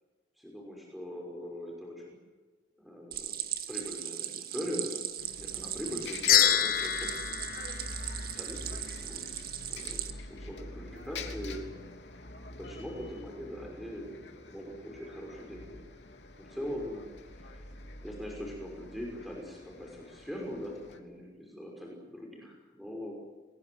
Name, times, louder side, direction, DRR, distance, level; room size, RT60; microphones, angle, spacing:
voice 1, 0.4-2.2 2.8-3.3 3.7-5.0 5.4-7.4 8.3-11.6 12.5-15.8 16.4-17.1 17.4-17.6 18.0-23.1, equal, ahead, -1 dB, 5.9 m, -41 dB
Stream, 3.1-10.1, right 11 dB, 55° right, 2.1 m, -38 dB
Bus, 5.2-21.0, left 2 dB, 80° left, 3.1 m, -46 dB
sound 1, 6.3-8.7, left 10 dB, 50° left, 2.2 m, -27 dB
29.5 x 21.0 x 8.0 m, 1.4 s
head